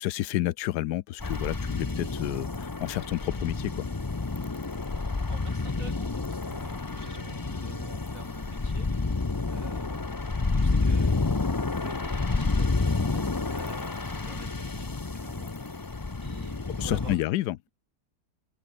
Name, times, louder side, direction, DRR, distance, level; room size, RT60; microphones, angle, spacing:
voice 1, 0.0-3.9 16.8-17.6, left 15 dB, 80° left, 1.2 m, -30 dB
sound 1, 1.2-17.2, left 3 dB, 25° left, 0.4 m, -29 dB
voice 2, 5.3-8.9 9.5-11.1 11.6-17.7, right 2 dB, 55° right, 5.9 m, -48 dB
open air
omnidirectional pair, 1.7 m